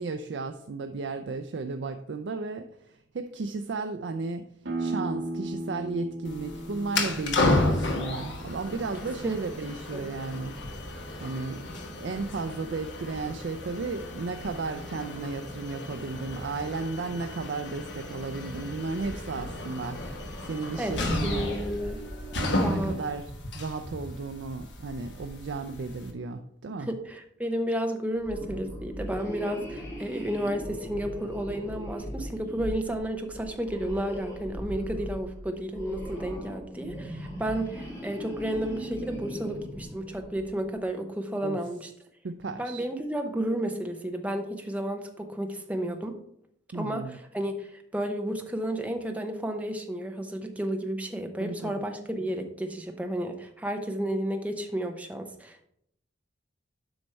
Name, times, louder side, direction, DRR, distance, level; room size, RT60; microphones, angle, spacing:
voice 1, 0.0-4.5 4.8-10.8 11.2-11.7 12.0-21.6 22.3-27.0 41.4-41.6 42.2-42.9 46.7-47.2 51.4-51.9, right 3 dB, 60° right, 7 dB, 0.4 m, -34 dB
sound 1, 4.6-10.0, right 2 dB, 80° right, 1.2 m, -37 dB
sound 2, 6.2-26.1, left 2 dB, 65° left, 1.2 m, -33 dB
voice 2, 9.0-9.4 9.9-10.2 20.8-22.0 22.6-22.9 26.8-41.9 42.6-46.2 46.7-55.7, right 1 dB, 10° right, 4 dB, 0.7 m, -32 dB
sound 3, 28.2-40.6, equal, 15° left, 2.5 m, -39 dB
7.8 x 5.2 x 4.3 m, 0.72 s
head